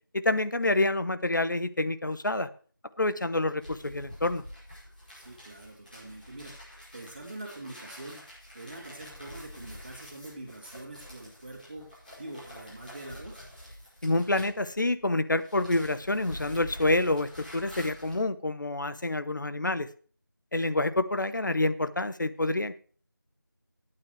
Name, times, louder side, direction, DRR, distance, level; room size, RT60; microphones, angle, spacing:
voice 1, 0.1-2.5 3.0-4.4 14.0-19.9 20.5-22.8, left 2 dB, 65° left, 13 dB, 0.9 m, -27 dB
sound 1, 3.6-15.0 15.3-18.2, equal, 25° left, 6.0 m, -47 dB
voice 2, 5.1-8.2 8.5-13.5, right 1 dB, 30° right, -2 dB, 2.9 m, -44 dB
16.0 x 9.0 x 3.2 m, 0.41 s
figure-of-eight pair, 175°, 11 cm